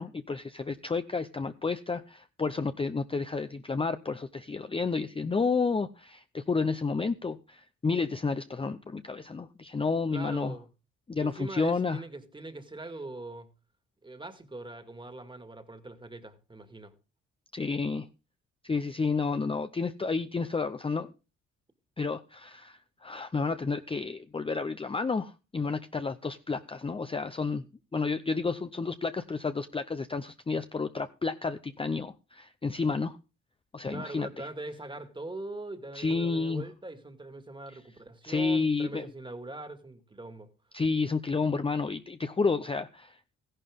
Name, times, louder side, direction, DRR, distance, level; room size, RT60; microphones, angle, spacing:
voice 1, 0.0-10.6 11.1-12.0 17.5-18.1 18.6-21.1 22.0-27.6 27.9-33.2 33.7-34.5 35.9-36.6 38.2-39.1 40.7-43.4, left 4 dB, 20° left, 0.6 m, -31 dB
voice 2, 10.1-10.7 11.2-13.5 14.0-16.9 33.9-40.5, right 2 dB, 15° right, 2.0 m, -42 dB
14.5 x 11.0 x 3.6 m
cardioid pair, 90°, 30 cm